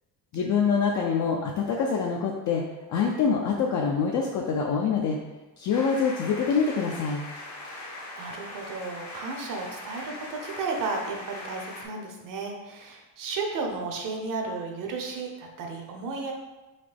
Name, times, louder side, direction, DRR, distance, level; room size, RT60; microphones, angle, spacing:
voice 1, 0.3-2.6 2.9-5.2 5.6-7.2, left 5 dB, 45° left, -1 dB, 0.4 m, -25 dB
sound 1, 5.7-11.9, left 2 dB, 75° left, 1.2 m, -41 dB
voice 2, 7.7-16.3, right 4 dB, 50° right, 2 dB, 0.8 m, -34 dB
4.1 x 3.2 x 3.4 m, 1.1 s
cardioid pair, 145°, 40 cm